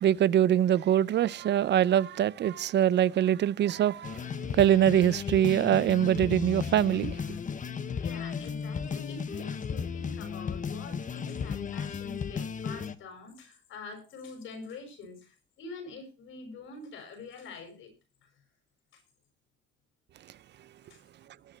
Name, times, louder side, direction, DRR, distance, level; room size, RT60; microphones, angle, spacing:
voice 1, 0.0-4.2 4.6-7.2, right 10 dB, 60° right, 0.5 m, -23 dB
sound 1, 4.0-13.0, left 6 dB, 40° left, 1.1 m, -35 dB
voice 2, 8.0-17.9 18.9-19.0 20.9-21.0, left 3 dB, 80° left, 5.9 m, -45 dB
19.5 x 8.0 x 4.3 m
cardioid pair, 90°, 20 cm